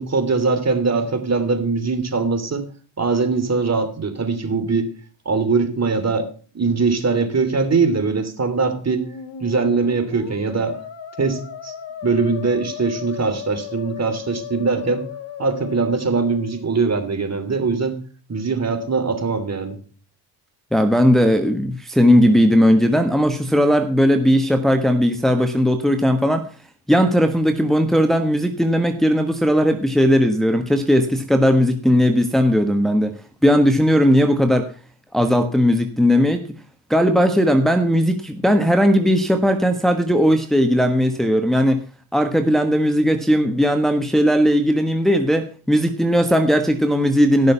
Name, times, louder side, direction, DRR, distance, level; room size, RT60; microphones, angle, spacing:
voice 1, 0.0-2.7 3.0-4.9 5.2-6.3 6.5-9.1 9.4-10.8 11.2-11.7 12.0-15.1 15.4-18.0 18.3-19.8, right 4 dB, 35° right, 8 dB, 3.0 m, -21 dB
Musical instrument, 8.7-16.8, left 9 dB, 70° left, 1.9 m, -35 dB
voice 2, 20.7-26.5 26.9-34.7 35.1-36.4 36.9-41.8 42.1-47.5, equal, ahead, 5 dB, 1.3 m, -17 dB
16.0 x 6.6 x 5.6 m, 0.39 s
supercardioid pair, 65°, 45 cm